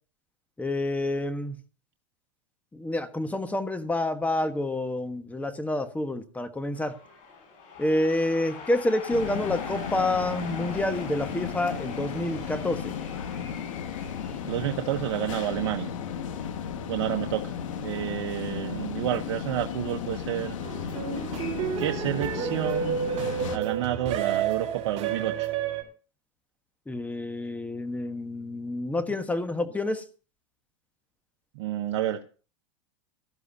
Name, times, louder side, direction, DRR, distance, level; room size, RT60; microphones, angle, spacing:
voice 1, 0.6-1.6 2.7-6.9 7.8-12.9 26.9-30.0, left 1 dB, 10° left, 9 dB, 1.3 m, -28 dB
sound 1, 6.7-18.3, left 4 dB, 55° left, 7.1 m, -44 dB
sound 2, 9.1-23.6, left 8 dB, 85° left, 1.7 m, -35 dB
voice 2, 14.4-15.9 16.9-20.6 21.8-23.0 23.5-25.5 31.5-32.2, right 12 dB, 70° right, 5 dB, 1.0 m, -30 dB
sound 3, 20.6-25.8, right 8 dB, 40° right, 4.0 m, -30 dB
17.5 x 13.0 x 2.8 m, 0.37 s
supercardioid pair, 115°, 16 cm